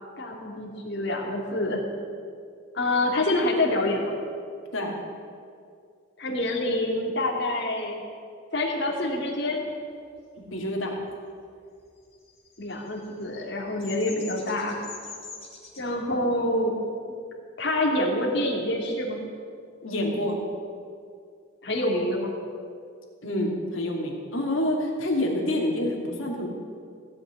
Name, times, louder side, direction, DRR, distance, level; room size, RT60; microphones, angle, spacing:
voice 1, 0.2-1.8 2.7-4.1 6.2-8.0 8.5-9.6 12.6-14.8 15.8-16.7 17.6-19.2 21.6-22.3, left 1 dB, 55° left, -1 dB, 2.6 m, -26 dB
voice 2, 10.5-11.0 19.8-20.4 23.2-26.5, left 1 dB, 80° left, 0 dB, 2.6 m, -27 dB
Bird vocalization bird call bird song, 12.1-15.8, left 4 dB, 30° left, 2.5 m, -43 dB
17.0 x 6.1 x 9.7 m, 2.3 s
head